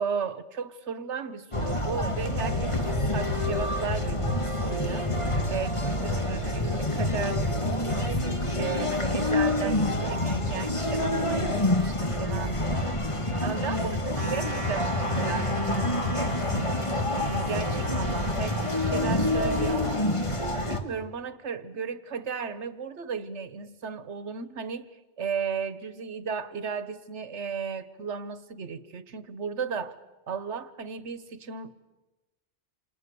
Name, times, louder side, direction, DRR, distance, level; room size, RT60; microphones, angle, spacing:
voice 1, 0.0-5.1 5.5-8.2 8.5-12.9 13.4-16.7 17.2-20.1 20.5-30.0 30.3-31.7, right 6 dB, 90° right, 14 dB, 1.4 m, -35 dB
sound 1, 1.5-20.8, left 1 dB, 25° left, 2.1 m, -27 dB
sound 2, 14.1-19.9, right 2 dB, 30° right, 2.0 m, -38 dB
28.5 x 27.5 x 6.9 m, 1.1 s
omnidirectional pair, 1.2 m